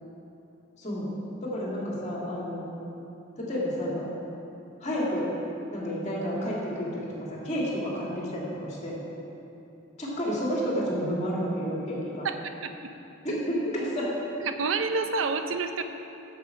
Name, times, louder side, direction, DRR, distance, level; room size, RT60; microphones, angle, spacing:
voice 1, 0.8-1.1 1.4-2.7 3.4-4.1 4.8-5.3 5.7-7.0 7.3-9.0 10.0-12.3 13.2-14.1, equal, 35° left, -5 dB, 2.3 m, -30 dB
voice 2, 12.2-12.9 14.4-15.8, right 4 dB, 85° right, 8 dB, 0.6 m, -29 dB
8.4 x 7.6 x 6.0 m, 2.9 s
head